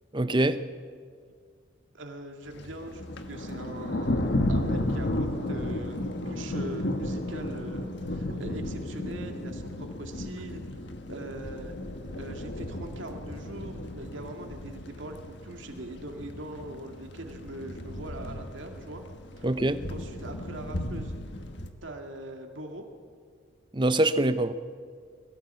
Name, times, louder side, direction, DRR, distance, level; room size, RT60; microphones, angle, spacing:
voice 1, 0.1-0.6 19.4-19.8 23.7-24.5, right 1 dB, 25° right, 12 dB, 0.7 m, -24 dB
voice 2, 1.9-3.0 3.3-10.6 11.1-11.8 12.1-19.0 19.4-19.5 19.9-21.1 21.8-22.9, right 1 dB, 70° right, 3 dB, 2.1 m, -41 dB
Thunder, 2.5-21.7, left 1 dB, 60° left, 1.4 m, -34 dB
21.5 x 17.0 x 8.2 m, 2.1 s
head